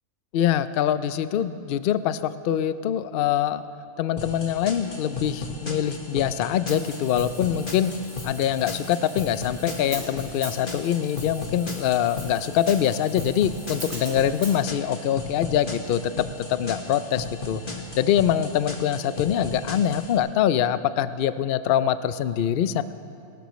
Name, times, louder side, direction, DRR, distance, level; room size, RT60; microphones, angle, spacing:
voice 1, 0.3-3.6 4.0-7.9 8.2-16.1 16.4-17.6 18.0-22.8, left 10 dB, 75° left, 13 dB, 0.5 m, -24 dB
sound 1, 4.2-20.2, left 3 dB, 35° left, 1.6 m, -36 dB
Hi-hat, 6.7-14.6, right 1 dB, 45° right, 4.7 m, -41 dB
30.0 x 13.0 x 3.1 m, 2.6 s
omnidirectional pair, 1.5 m